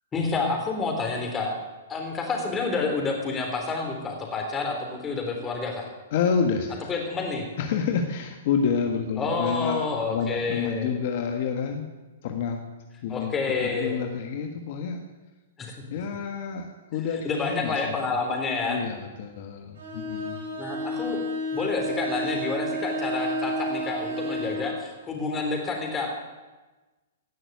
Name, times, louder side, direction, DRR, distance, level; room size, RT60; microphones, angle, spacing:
voice 1, 0.1-1.5 1.9-5.9 6.9-7.4 9.2-11.0 13.1-14.0 15.6-15.7 17.2-18.8 20.6-21.2 21.5-26.1, left 4 dB, 20° left, 2 dB, 3.6 m, -29 dB
voice 2, 6.1-7.0 7.6-11.9 12.2-12.6 13.0-15.0 15.9-18.2 18.6-20.5, left 6 dB, 55° left, 4 dB, 1.5 m, -29 dB
Bowed string instrument, 19.8-24.7, equal, 75° right, 6.4 m, -31 dB
17.5 x 6.2 x 9.5 m, 1.2 s
hypercardioid pair, 135°, 0 cm